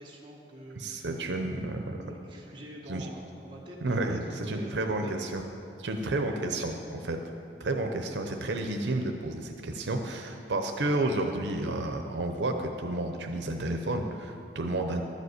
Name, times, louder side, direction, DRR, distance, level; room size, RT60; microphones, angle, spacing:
voice 1, 0.0-1.5 1.9-4.7, right 1 dB, 30° right, -3 dB, 1.7 m, -46 dB
voice 2, 0.8-2.0 2.9-3.1 3.8-5.4 5.8-7.2 7.6-15.0, right 2 dB, 85° right, 4 dB, 0.7 m, -31 dB
12.5 x 5.2 x 8.0 m, 2.8 s
head